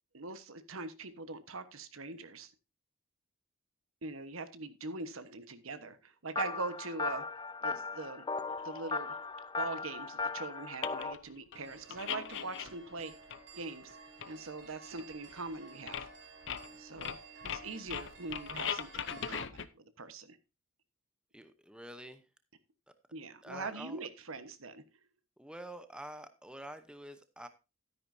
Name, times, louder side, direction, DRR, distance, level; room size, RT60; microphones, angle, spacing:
voice 1, 0.1-2.5 4.0-8.3 8.6-9.1 9.6-13.1 13.5-14.0 14.3-16.1 16.8-17.2 17.4-20.4 23.1-24.8, right 3 dB, 80° right, 1.2 m, -42 dB
sound 1, 6.4-11.1, left 4 dB, 20° left, 0.4 m, -37 dB
sound 2, 8.8-8.9 10.2-10.3 10.8-11.2 11.5-13.0 13.3-13.9 14.2-14.3 14.6-14.7 15.0-15.5 15.8-16.2 16.4-19.7, left 8 dB, 60° left, 0.7 m, -40 dB
sound 3, 11.5-19.4, right 4 dB, 60° right, 3.2 m, -54 dB
voice 2, 21.3-22.2 23.4-24.0 25.4-27.5, right 1 dB, 5° right, 0.8 m, -47 dB
12.5 x 9.9 x 2.7 m
head